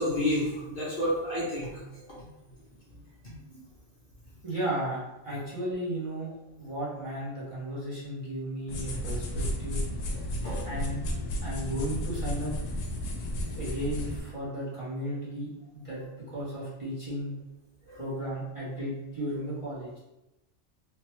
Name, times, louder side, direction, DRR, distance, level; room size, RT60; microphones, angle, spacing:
voice 1, 0.0-1.8 3.5-3.6 10.4-10.7 17.9-18.0, left 1 dB, 50° left, -6 dB, 0.8 m, -30 dB
voice 2, 4.4-6.3 6.6-9.8 10.6-11.0 11.4-12.5 13.5-16.0 16.3-17.3 17.9-20.0, right 1 dB, 30° right, -9 dB, 0.8 m, -34 dB
sound 1, 8.7-14.2, equal, 85° left, 1.0 m, -33 dB
3.3 x 2.1 x 3.0 m, 0.98 s
omnidirectional pair, 1.3 m